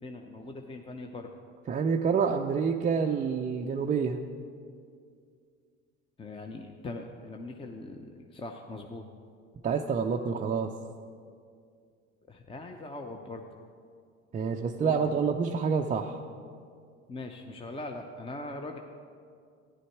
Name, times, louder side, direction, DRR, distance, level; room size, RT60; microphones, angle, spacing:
voice 1, 0.0-1.3 6.2-9.0 12.3-13.4 14.8-15.2 17.1-18.8, left 2 dB, 15° left, 3 dB, 0.7 m, -41 dB
voice 2, 1.7-4.2 9.6-10.7 14.3-16.2, right 6 dB, 20° right, 2 dB, 0.5 m, -27 dB
11.5 x 9.9 x 4.6 m, 2.3 s
hypercardioid pair, 75°, 38 cm